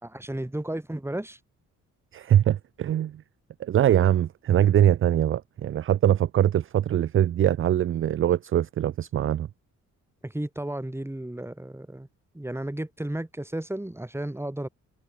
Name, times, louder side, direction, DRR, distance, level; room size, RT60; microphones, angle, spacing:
voice 1, 0.0-1.4 10.2-12.1 12.3-14.7, right 1 dB, 10° right, 4.1 m, -33 dB
voice 2, 2.1-3.2 3.6-9.5, right 11 dB, 40° right, 0.4 m, -22 dB
cardioid pair, 95°, 32 cm